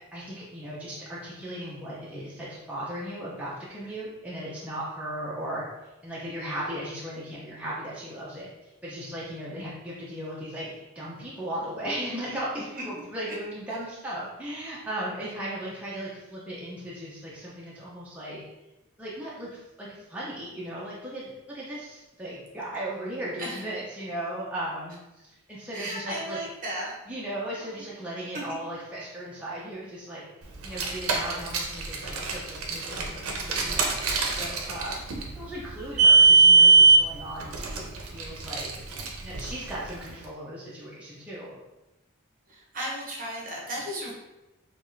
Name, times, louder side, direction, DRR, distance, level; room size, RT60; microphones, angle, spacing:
voice 1, 0.0-18.4 19.0-26.4 27.1-30.3 30.6-35.0 35.3-38.7 39.2-41.6, right 1 dB, 5° right, -8 dB, 0.5 m, -37 dB
voice 2, 25.7-27.0 27.6-27.8 28.5-28.6 42.5-44.1, right 1 dB, 40° right, -2 dB, 0.9 m, -35 dB
Car, 30.6-40.1, right 3 dB, 70° right, 0.6 m, -22 dB
4.5 x 2.4 x 2.5 m, 0.99 s
head